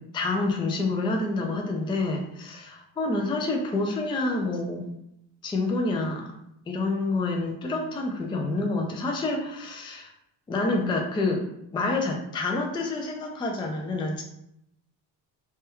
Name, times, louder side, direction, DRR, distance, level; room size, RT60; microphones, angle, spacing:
voice 1, 0.1-4.8 5.4-6.2 6.7-10.1 10.5-11.4 11.7-14.2, left 2 dB, 10° left, 1 dB, 0.4 m, -28 dB
3.3 x 2.2 x 2.9 m, 0.78 s
cardioid pair, 95°, 46 cm